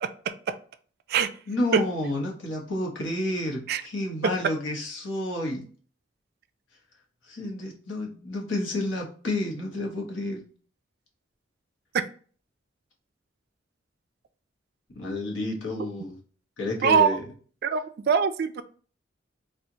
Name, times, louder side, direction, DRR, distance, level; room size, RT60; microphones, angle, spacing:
voice 1, 1.5-5.6 7.2-10.4 14.9-16.2 16.6-17.2, left 1 dB, 90° left, -1 dB, 1.2 m, -30 dB
voice 2, 17.6-18.6, right 7 dB, 55° right, 11 dB, 0.3 m, -23 dB
4.4 x 2.4 x 2.7 m, 0.43 s
head